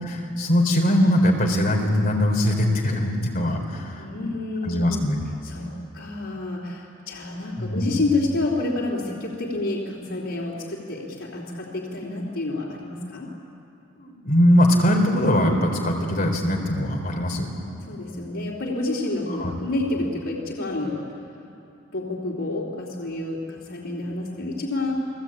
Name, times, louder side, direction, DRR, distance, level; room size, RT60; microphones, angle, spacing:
voice 1, 0.0-4.1 4.6-5.2 7.6-8.0 14.0-17.5 19.4-19.5, equal, 45° left, 1 dB, 4.0 m, -21 dB
voice 2, 4.0-5.0 5.4-13.3 17.9-21.0 21.9-24.9, left 2 dB, 85° left, -5 dB, 3.4 m, -29 dB
30.0 x 18.5 x 8.9 m, 2.7 s
head